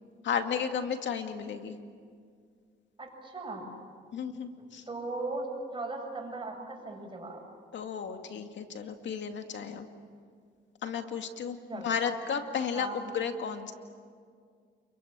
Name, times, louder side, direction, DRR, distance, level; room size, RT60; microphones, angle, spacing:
voice 1, 0.2-1.8 4.1-4.8 7.7-9.9 10.8-13.7, left 7 dB, 65° left, 6 dB, 2.2 m, -33 dB
voice 2, 3.0-3.7 4.9-7.4 11.7-11.9 12.7-13.0, right 2 dB, 25° right, 1 dB, 7.7 m, -37 dB
28.5 x 23.5 x 8.8 m, 2.1 s
cardioid pair, 90°, 20 cm